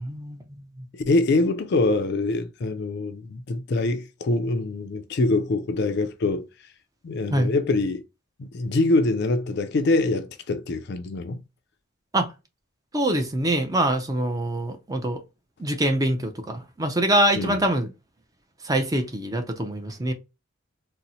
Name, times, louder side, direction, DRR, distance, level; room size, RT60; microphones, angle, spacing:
voice 1, 0.0-0.9 7.3-7.5 12.1-12.3 12.9-15.2 15.6-17.9 18.6-20.1, right 1 dB, 15° right, 0.4 m, -24 dB
voice 2, 0.9-6.5 7.0-8.0 8.4-11.4 17.4-17.6, left 2 dB, 50° left, 0.4 m, -24 dB
4.0 x 2.0 x 2.7 m
head